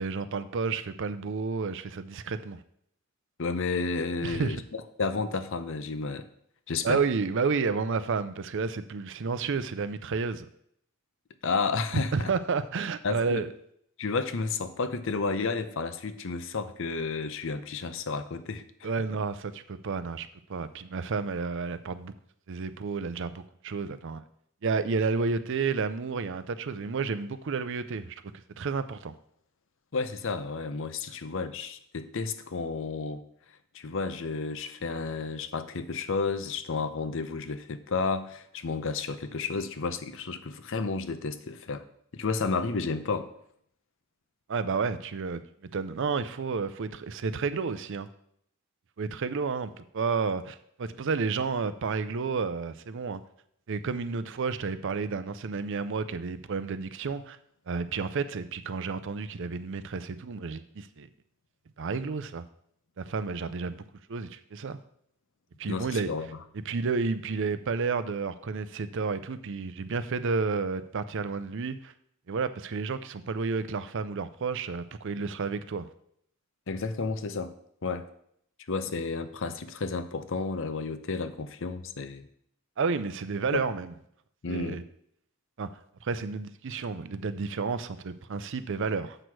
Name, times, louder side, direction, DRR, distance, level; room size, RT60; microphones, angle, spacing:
voice 1, 0.0-2.6 4.2-4.6 6.8-10.5 12.1-13.5 18.8-22.1 22.5-24.2 24.6-28.2 28.6-29.1 44.5-48.1 49.0-53.2 53.7-57.4 57.7-61.1 61.8-62.4 63.0-63.8 64.1-64.8 65.6-66.1 66.7-71.9 72.3-75.9 82.8-83.9 84.5-84.8 85.6-85.7 86.0-89.2, right 4 dB, 60° right, 13 dB, 0.5 m, -31 dB
voice 2, 3.4-6.3 6.7-7.0 11.4-12.3 13.0-13.4 14.0-18.9 29.9-33.2 33.7-41.8 42.2-43.3 65.7-66.4 76.7-77.5 77.8-78.1 78.7-82.3 83.5-83.6 84.4-84.8, left 4 dB, 65° left, 11 dB, 0.7 m, -31 dB
7.8 x 6.1 x 4.7 m, 0.69 s
head